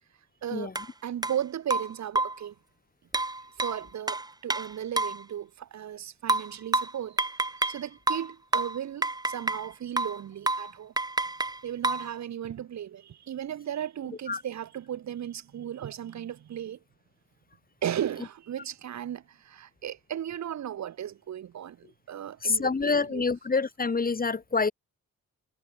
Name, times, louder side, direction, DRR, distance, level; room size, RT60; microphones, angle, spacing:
voice 1, 0.4-0.7 1.0-2.5 3.6-10.9 11.6-16.8 17.8-23.3, right 10 dB, 65° right, 4.7 m, -36 dB
sound 1, 0.8-0.9 1.2-1.4 1.7-2.5 3.1-5.2 6.3-7.8 8.1-9.7 10.0-10.2 10.5-10.7 11.0-12.1, right 2 dB, 15° right, 1.4 m, -29 dB
voice 2, 22.4-24.7, left 4 dB, 30° left, 4.6 m, -26 dB
cardioid pair, 90°, 30 cm